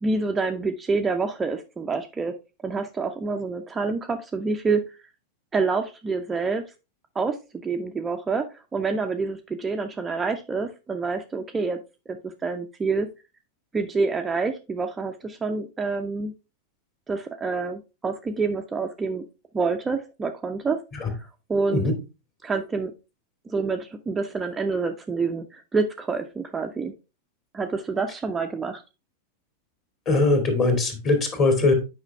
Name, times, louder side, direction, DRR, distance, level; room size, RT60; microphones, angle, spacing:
voice 1, 0.0-2.3 2.6-4.8 5.5-6.6 7.1-7.4 7.6-11.8 12.1-13.1 13.7-16.3 17.1-19.2 19.5-20.8 21.1-21.9 22.4-22.9 23.5-26.9 27.5-28.8, right 4 dB, 15° right, 5 dB, 0.6 m, -27 dB
voice 2, 30.1-31.7, left 3 dB, 30° left, 6 dB, 2.3 m, -21 dB
8.1 x 5.1 x 3.3 m, 0.28 s
figure-of-eight pair, 90°, 0 cm